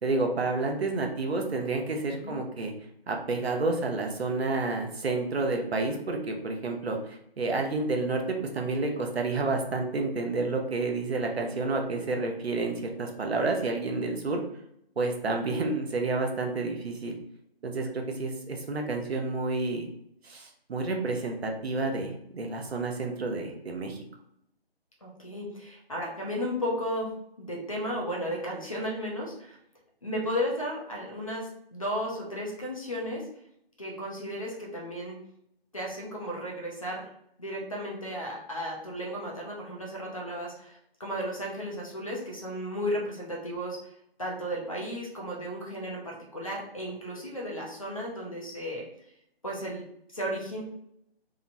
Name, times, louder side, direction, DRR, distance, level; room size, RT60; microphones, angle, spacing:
voice 1, 0.0-2.7 3.1-14.4 15.0-17.2 17.6-19.9 20.2-24.0, right 3 dB, 80° right, 2 dB, 0.7 m, -30 dB
voice 2, 25.0-27.1 27.4-29.6 30.0-33.3 33.8-35.2 35.7-37.1 37.4-43.9 44.2-48.9 49.4-49.8 50.1-50.6, equal, 35° left, -2 dB, 0.5 m, -34 dB
2.9 x 2.1 x 2.5 m, 0.75 s
figure-of-eight pair, 165°, 31 cm